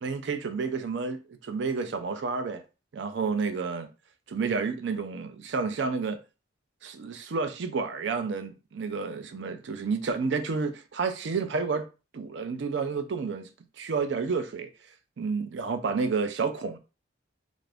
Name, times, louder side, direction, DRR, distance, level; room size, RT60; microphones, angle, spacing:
voice 1, 0.0-2.6 2.9-3.9 4.3-6.2 6.8-11.9 12.1-13.5 13.8-14.7 15.2-16.8, right 4 dB, 60° right, 0.4 m, -30 dB
2.5 x 2.5 x 3.3 m
head